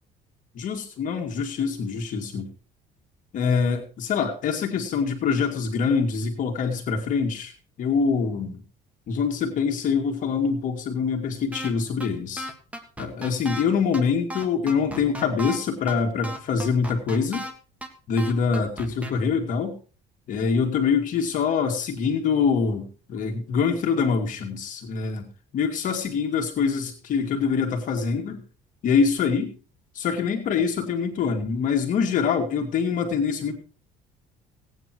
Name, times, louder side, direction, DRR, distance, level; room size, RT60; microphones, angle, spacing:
voice 1, 0.5-2.5 3.3-8.6 9.1-12.5 13.0-17.5 18.1-19.8 20.3-25.3 25.5-28.4 28.8-29.5 30.0-33.6, left 5 dB, 50° left, 2 dB, 2.2 m, -25 dB
sound 1, 11.5-11.7 12.0-12.1 12.4-13.6 13.9-14.0 14.3-15.6 15.9-16.0 16.2-17.5 17.8-17.9 18.2-19.1, right 1 dB, 10° right, 1.8 m, -34 dB
17.5 x 9.2 x 4.6 m, 0.37 s
cardioid pair, 150°, 18 cm